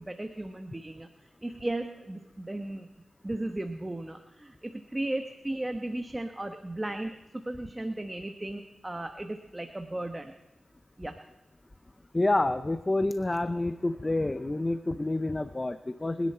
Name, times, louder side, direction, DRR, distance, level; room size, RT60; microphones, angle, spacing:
voice 1, 0.0-2.9 3.2-10.3 11.0-11.2, right 1 dB, 20° right, 6 dB, 1.1 m, -36 dB
voice 2, 12.1-16.3, left 2 dB, 25° left, 12 dB, 0.6 m, -28 dB
25.5 x 10.5 x 4.4 m, 1.1 s
cardioid pair, 65°, 0 cm